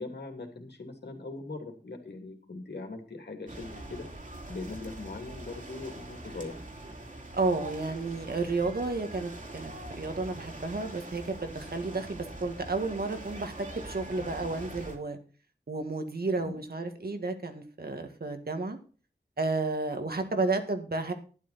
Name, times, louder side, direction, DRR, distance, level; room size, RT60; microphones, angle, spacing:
voice 1, 0.0-4.1 4.5-6.6 16.4-16.6 20.2-20.5, left 3 dB, 80° left, 3 dB, 2.8 m, -41 dB
sound 1, 3.5-15.0, right 1 dB, 50° right, 2.8 m, -43 dB
voice 2, 7.3-15.2 15.7-18.8 19.4-21.1, right 3 dB, 65° right, 6 dB, 1.9 m, -32 dB
12.0 x 10.5 x 4.2 m, 0.38 s
wide cardioid pair, 75°, 17 cm